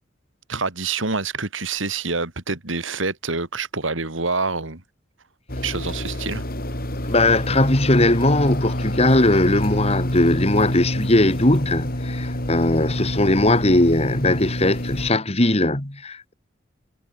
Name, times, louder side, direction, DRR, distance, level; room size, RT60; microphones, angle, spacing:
voice 1, 0.5-4.8 5.6-6.4, right 4 dB, 80° right, 3.3 m, -26 dB
sound 1, 5.5-15.1, left 1 dB, 50° left, 5.0 m, -27 dB
voice 2, 7.1-16.3, left 1 dB, 30° left, 2.4 m, -19 dB
head